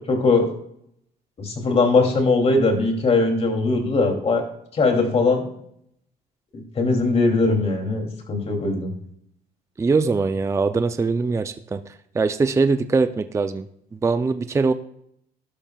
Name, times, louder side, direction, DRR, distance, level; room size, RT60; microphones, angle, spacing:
voice 1, 0.1-0.5 1.4-4.4 4.7-5.4 6.5-8.9, left 3 dB, 35° left, 3 dB, 2.7 m, -20 dB
voice 2, 9.8-11.8 12.1-13.7 14.0-14.7, right 4 dB, 15° right, 10 dB, 0.5 m, -21 dB
12.0 x 12.0 x 2.3 m, 0.72 s
cardioid pair, 110°, 17 cm